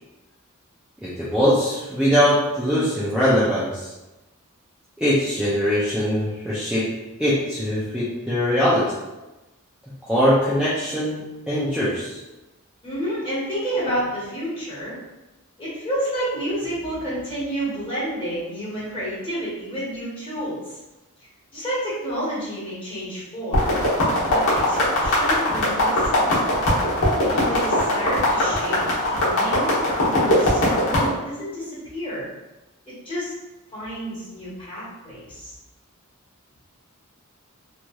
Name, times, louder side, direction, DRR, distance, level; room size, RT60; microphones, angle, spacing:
voice 1, 1.0-3.9 5.0-6.9 7.2-9.0 10.1-12.2, equal, 5° right, -10 dB, 0.5 m, -21 dB
voice 2, 12.8-14.9 15.6-20.8 21.2-23.8 24.2-26.6 27.2-28.8 29.1-29.7 30.1-32.3 32.9-33.3 33.7-35.5, equal, 25° left, -9 dB, 1.4 m, -30 dB
sound 1, 23.5-31.1, left 1 dB, 65° left, 1.1 m, -20 dB
3.0 x 2.7 x 2.3 m, 1.0 s
head